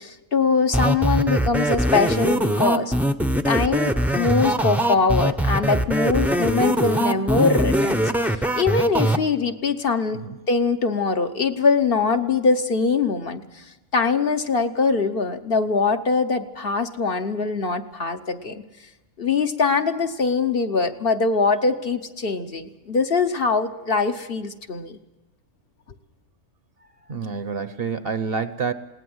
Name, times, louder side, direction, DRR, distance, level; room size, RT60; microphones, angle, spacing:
voice 1, 0.0-2.9 3.4-10.2 10.5-13.4 13.9-18.6 19.2-25.0, left 4 dB, 50° left, 7 dB, 1.1 m, -22 dB
sound 1, 0.7-9.2, right 1 dB, ahead, 0.6 m, -21 dB
voice 2, 27.1-28.7, right 5 dB, 50° right, 12 dB, 1.1 m, -27 dB
20.5 x 18.0 x 7.9 m, 1.1 s
omnidirectional pair, 1.3 m